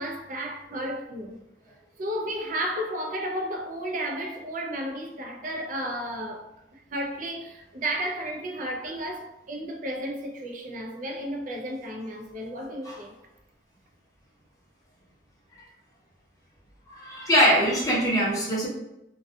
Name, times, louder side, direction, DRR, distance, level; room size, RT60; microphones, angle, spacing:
voice 1, 0.0-1.4 2.0-13.1, right 1 dB, 45° right, 0.4 m, -33 dB
voice 2, 16.9-18.7, equal, 20° left, 0.7 m, -23 dB
2.3 x 2.3 x 2.5 m
head